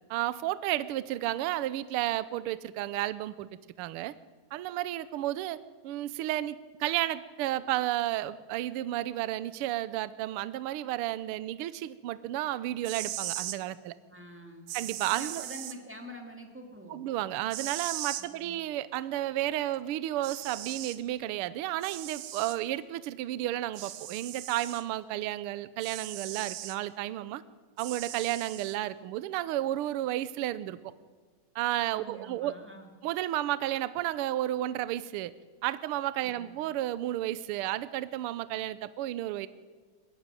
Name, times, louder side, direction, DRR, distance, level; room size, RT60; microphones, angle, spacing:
voice 1, 0.1-3.5 3.8-4.1 4.5-13.9 14.7-15.4 16.9-27.4 27.8-30.8 31.5-32.6 33.0-35.3 35.6-39.5, right 14 dB, 90° right, 16 dB, 1.2 m, -32 dB
sound 1, 12.7-13.6 14.7-15.8 17.5-18.3 19.7-19.8 20.2-21.0 21.8-22.6 23.7-24.8 25.8-26.8 27.8-28.8, right 13 dB, 75° right, 2.1 m, -39 dB
voice 2, 14.1-14.7 15.1-17.0 18.2-18.5 31.9-32.9 36.2-36.6, equal, 5° right, 2 dB, 2.2 m, -46 dB
21.0 x 15.5 x 9.1 m, 1.5 s
omnidirectional pair, 3.4 m